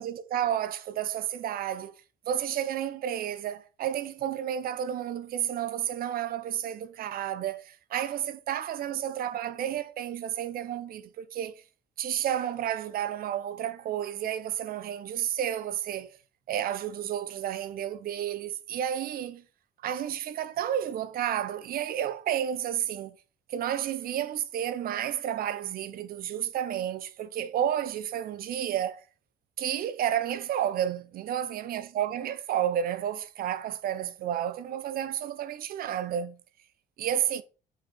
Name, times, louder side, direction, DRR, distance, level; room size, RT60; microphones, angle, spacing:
voice 1, 0.0-2.0 2.3-11.6 12.0-16.2 16.5-19.4 19.8-23.2 23.5-29.0 29.6-36.4 37.0-37.4, right 10 dB, 60° right, 0.8 m, -31 dB
5.1 x 4.8 x 5.4 m
cardioid pair, 110°, 17 cm